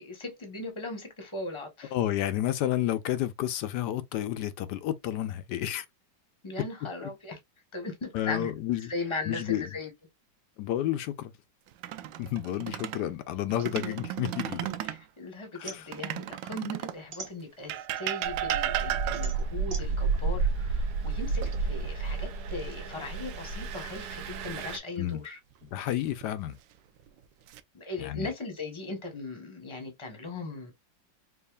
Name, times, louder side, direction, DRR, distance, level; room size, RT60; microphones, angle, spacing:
voice 1, 0.0-1.9 6.4-7.4 7.7-8.5 8.9-9.9 13.7-13.9 14.8-25.4 27.7-30.7, left 2 dB, 20° left, 1.2 m, -38 dB
voice 2, 1.9-5.9 8.1-8.9 9.3-9.7 10.6-11.3 12.2-14.7 15.5-15.9 25.0-25.2 25.7-26.6 28.0-28.3, left 12 dB, 75° left, 1.1 m, -30 dB
sound 1, 11.7-13.1 13.5-15.0 15.9-17.1 17.7-19.5 21.4-22.1 22.5-22.7 25.6-26.2 27.0-27.6, right 12 dB, 85° right, 1.3 m, -34 dB
sound 2, 13.6-15.1 15.4-17.9 18.4-21.5, right 5 dB, 45° right, 1.4 m, -46 dB
Engine, 18.2-24.8, right 4 dB, 70° right, 1.2 m, -31 dB
4.7 x 3.0 x 2.3 m
omnidirectional pair, 2.0 m